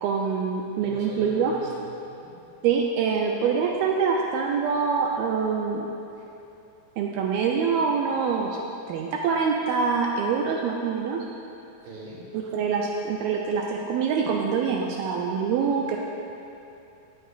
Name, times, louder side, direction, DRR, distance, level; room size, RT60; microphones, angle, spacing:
voice 1, 0.0-1.6 2.6-5.9 7.0-8.6 8.9-11.2 12.3-16.0, right 6 dB, 85° right, 0 dB, 2.2 m, -25 dB
voice 2, 0.8-2.3 11.8-12.2, right 2 dB, 65° right, -5 dB, 3.4 m, -43 dB
16.5 x 8.0 x 2.5 m, 2.7 s
omnidirectional pair, 4.7 m